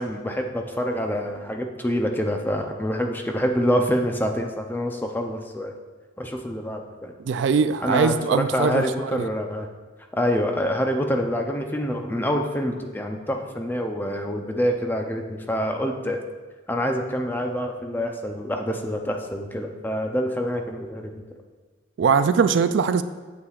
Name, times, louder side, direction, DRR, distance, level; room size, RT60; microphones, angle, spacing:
voice 1, 0.0-5.7 6.2-7.1 7.8-9.7 10.1-16.2 16.7-21.1, equal, 10° left, 3 dB, 0.5 m, -26 dB
voice 2, 7.2-9.2 22.0-23.0, right 6 dB, 65° right, 12 dB, 0.3 m, -21 dB
8.5 x 7.9 x 2.4 m, 1.4 s
head